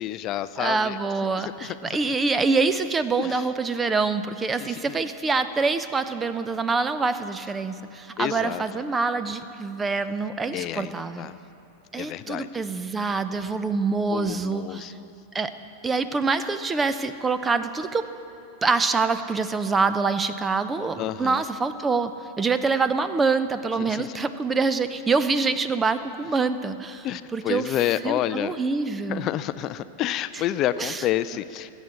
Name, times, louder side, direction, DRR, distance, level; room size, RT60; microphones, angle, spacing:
voice 1, 0.0-1.0 1.4-2.0 3.2-3.5 4.6-5.0 8.2-8.8 10.5-11.4 11.9-12.5 14.1-15.1 21.0-21.4 23.8-24.2 27.0-28.5 29.1-31.7, left 12 dB, 35° left, 14 dB, 0.4 m, -29 dB
voice 2, 0.6-11.3 11.9-14.9 15.3-15.5 15.8-18.1 18.6-22.1 22.4-27.1 27.3-27.7 28.0-29.3 30.8-31.0, right 4 dB, 15° right, 12 dB, 0.6 m, -25 dB
21.0 x 8.1 x 7.6 m, 3.0 s
figure-of-eight pair, 90°, 0 cm